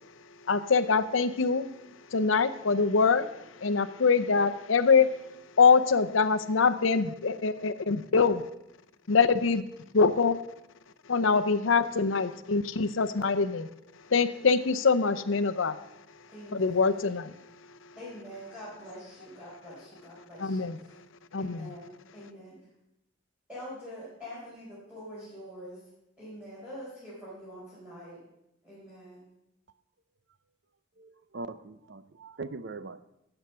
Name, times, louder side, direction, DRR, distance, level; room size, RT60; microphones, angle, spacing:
voice 1, 0.5-1.7 2.1-3.3 3.6-5.2 5.6-8.4 9.1-9.6 9.9-10.4 11.1-13.7 14.1-15.7 16.5-17.3 20.4-20.8 21.3-21.7, left 5 dB, 80° left, 11 dB, 0.7 m, -24 dB
voice 2, 16.3-17.0 18.0-21.0 21.3-22.6 23.5-25.8 26.2-28.2 28.6-29.2, equal, 5° right, -10 dB, 4.3 m, -45 dB
voice 3, 31.0-33.0, right 3 dB, 60° right, 13 dB, 0.6 m, -41 dB
13.0 x 8.0 x 5.7 m, 0.85 s
head